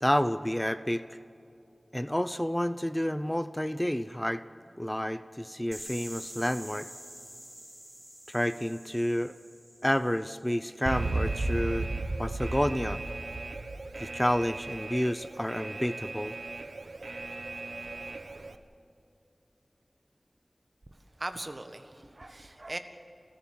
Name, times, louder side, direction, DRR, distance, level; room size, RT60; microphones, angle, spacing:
voice 1, 0.0-1.0 1.9-4.4 4.8-6.9 8.3-9.4 9.8-11.9 12.2-13.0 14.0-16.3, equal, 10° left, 13 dB, 0.6 m, -29 dB
sound 1, 5.7-10.5, equal, 10° right, 2.5 m, -47 dB
Alarm, 10.9-18.6, right 2 dB, 90° right, 1.0 m, -35 dB
voice 2, 20.9-22.8, right 1 dB, 50° right, 8 dB, 1.6 m, -40 dB
28.5 x 14.5 x 7.7 m, 2.7 s
wide cardioid pair, 45°, 0 cm